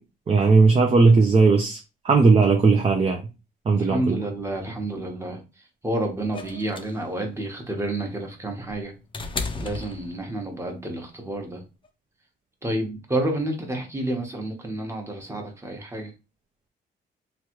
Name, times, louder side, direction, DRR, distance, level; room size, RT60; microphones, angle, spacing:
voice 1, 0.3-1.8 2.0-3.3 3.7-4.2, right 4 dB, 30° right, 3 dB, 0.5 m, -17 dB
voice 2, 3.7-5.4 5.8-8.9 9.6-11.6 12.6-16.1, right 1 dB, 15° right, 2 dB, 1.0 m, -29 dB
sound 1, 6.3-10.6 11.8-11.9, left 4 dB, 25° left, 0.5 m, -35 dB
3.1 x 2.3 x 3.0 m, 0.29 s
cardioid pair, 90°, 20 cm